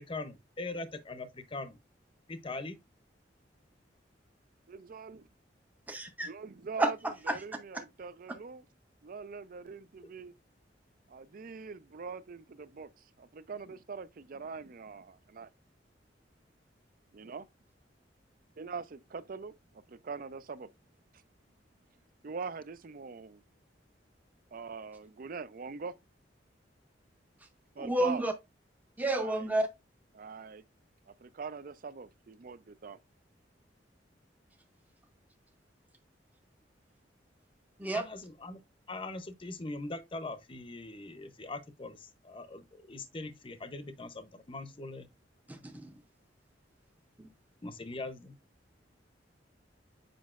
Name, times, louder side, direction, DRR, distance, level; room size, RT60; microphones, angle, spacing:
voice 1, 0.0-1.8 2.3-2.8 37.9-38.6 38.9-45.1 47.6-48.4, left 2 dB, 30° left, 0.7 m, -41 dB
voice 2, 4.7-5.2 6.3-7.0 7.3-8.6 9.0-10.3 11.1-12.9 13.3-15.5 17.1-17.4 18.6-19.5 20.0-20.7 22.2-23.4 24.5-25.9 27.8-28.2 29.1-29.4 30.1-30.6 31.2-33.0, right 5 dB, 50° right, 0.5 m, -42 dB
voice 3, 5.9-6.3 6.8-7.4 27.8-28.3 29.0-29.7 37.8-38.0 45.5-45.9 47.2-47.3, right 1 dB, 10° right, 0.7 m, -31 dB
7.6 x 5.1 x 2.4 m
head